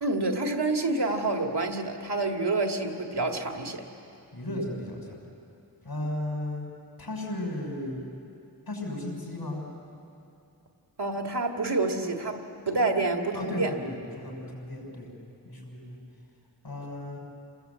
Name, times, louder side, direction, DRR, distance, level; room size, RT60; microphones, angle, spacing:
voice 1, 0.0-3.8 11.0-13.8, right 2 dB, 90° right, 3 dB, 2.1 m, -28 dB
voice 2, 4.3-5.2 5.8-6.7 7.0-8.0 8.7-9.6 13.3-15.1 15.4-16.0 16.6-17.2, left 1 dB, 65° left, 0 dB, 6.2 m, -35 dB
28.0 x 21.0 x 8.2 m, 2.7 s
wide cardioid pair, 45°, 39 cm